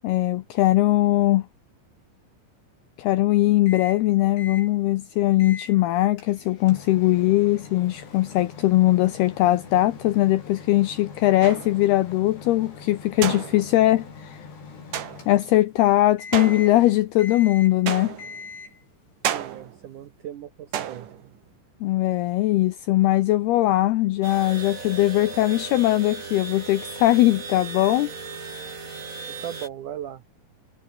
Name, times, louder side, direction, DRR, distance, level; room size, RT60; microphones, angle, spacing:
voice 1, 0.0-1.5 3.0-14.4 15.3-18.2 21.8-28.1, left 16 dB, 80° left, 2.3 m, -20 dB
Microwave oven, 3.7-4.1 4.4-4.7 5.4-5.8 6.2-15.8 16.2-16.8 17.2-17.8 18.2-18.8, left 5 dB, 60° left, 8.7 m, -42 dB
sound 1, 11.4-11.9 13.2-13.9 14.9-15.5 16.3-17.1 17.9-18.5 19.2-19.9 20.7-21.4, right 10 dB, 55° right, 2.8 m, -31 dB
voice 2, 19.3-21.4 29.4-30.2, right 10 dB, 80° right, 1.7 m, -37 dB
sound 2, 24.2-29.7, right 4 dB, 30° right, 1.5 m, -37 dB
omnidirectional pair, 5.6 m